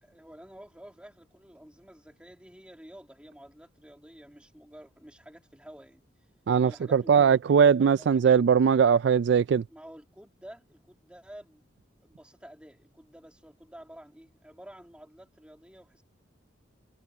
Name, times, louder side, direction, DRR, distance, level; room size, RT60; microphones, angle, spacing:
voice 1, 0.0-6.0 6.6-8.5 9.7-16.0, equal, 5° right, 2.2 m, -50 dB
voice 2, 6.5-9.6, right 7 dB, 60° right, 0.3 m, -21 dB
head